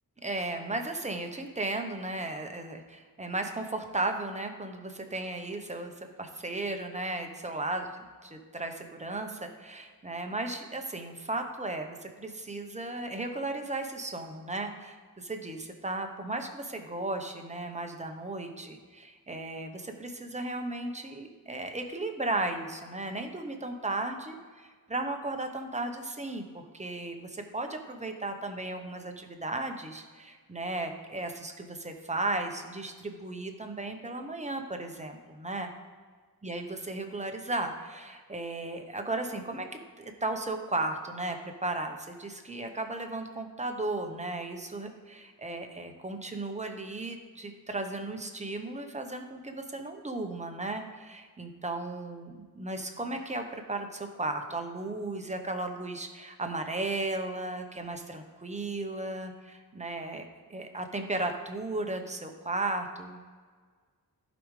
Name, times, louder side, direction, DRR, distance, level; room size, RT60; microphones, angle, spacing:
voice 1, 0.2-5.9 6.2-7.9 8.3-35.7 36.4-39.7 40.0-63.2, right 2 dB, 20° right, 5 dB, 0.9 m, -35 dB
15.0 x 5.2 x 3.3 m, 1.6 s
wide cardioid pair, 110°, 38 cm